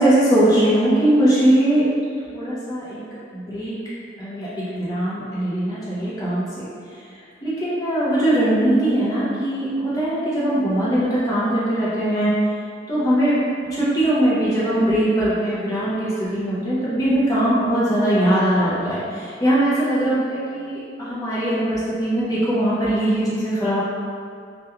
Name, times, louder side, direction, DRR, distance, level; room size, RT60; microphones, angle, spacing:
voice 1, 0.0-1.8 2.3-3.0 3.3-3.7 4.2-6.5 7.4-12.3 12.9-13.4 13.7-23.8, right 1 dB, 20° left, -10 dB, 0.5 m, -20 dB
2.3 x 2.1 x 2.9 m, 2.3 s
head